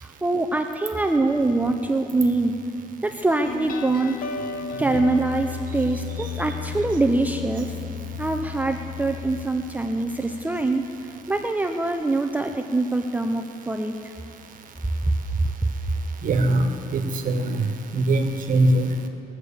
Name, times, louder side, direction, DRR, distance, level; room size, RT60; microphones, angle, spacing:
voice 1, 0.0-2.5 3.0-4.2 4.8-7.7 8.2-10.8 11.3-14.1 15.1-15.5, right 2 dB, 10° right, 4 dB, 0.6 m, -24 dB
sound 1, 3.5-10.6, left 7 dB, 60° left, 0.8 m, -34 dB
voice 2, 16.2-17.7 17.9-18.9, right 2 dB, 55° right, 6 dB, 1.5 m, -21 dB
21.0 x 8.1 x 6.9 m, 2.6 s
cardioid pair, 110°, 17 cm